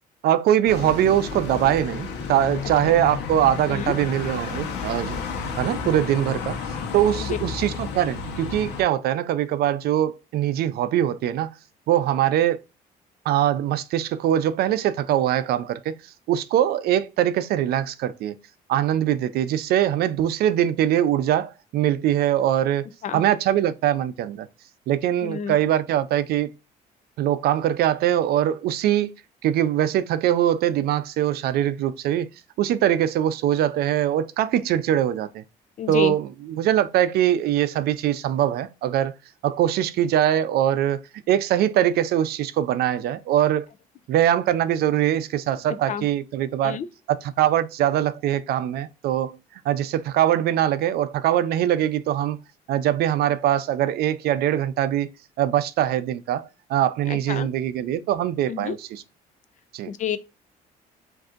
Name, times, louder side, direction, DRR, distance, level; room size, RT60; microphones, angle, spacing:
voice 1, 0.2-5.2 5.6-6.6 6.9-11.5 11.9-12.6 13.3-16.0 16.3-18.4 18.7-22.9 23.1-24.5 24.9-26.5 27.2-29.1 29.4-32.3 32.6-35.4 35.9-39.1 39.4-43.7 44.1-46.8 47.1-52.4 52.7-55.1 55.4-59.0 59.7-59.9, right 11 dB, 70° right, 0.5 m, -22 dB
sound 1, 0.7-8.8, left 5 dB, 85° left, 0.9 m, -32 dB
voice 2, 25.2-25.6 35.8-36.1 45.9-46.0 46.6-46.9 57.1-57.5 58.5-58.8 59.9-60.2, left 8 dB, 50° left, 0.5 m, -29 dB
7.6 x 2.7 x 2.5 m
cardioid pair, 110°, 17 cm